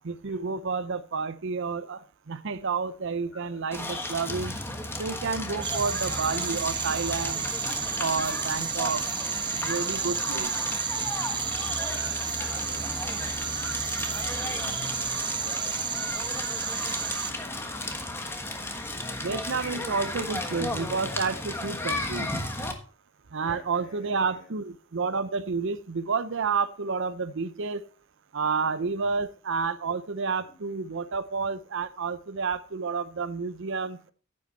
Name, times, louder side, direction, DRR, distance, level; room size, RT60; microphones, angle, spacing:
voice 1, 0.0-4.5 5.0-7.4 8.0-9.0 9.5-10.5 19.2-22.3 23.3-27.9 28.3-34.1, right 4 dB, 65° right, 0.7 m, -30 dB
voice 2, 3.1-3.6 5.5-5.8 8.4-8.8 11.6-18.7 20.0-20.4 23.4-24.6 29.0-29.2 30.3-30.6, left 1 dB, 75° left, 5.5 m, -50 dB
Crackle, 3.7-22.7, left 1 dB, 10° left, 1.3 m, -34 dB
sound 1, 5.6-17.3, right 7 dB, 20° right, 0.5 m, -32 dB
9.7 x 8.5 x 4.1 m
head